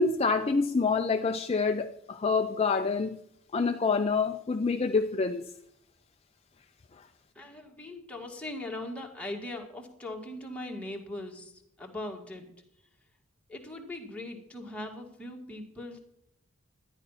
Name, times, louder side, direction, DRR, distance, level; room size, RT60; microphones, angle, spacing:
voice 1, 0.0-3.2 3.5-5.4, left 4 dB, 30° left, 0.4 m, -27 dB
voice 2, 7.3-12.9 13.5-16.0, left 1 dB, 5° left, 1.9 m, -40 dB
12.5 x 10.0 x 5.7 m
head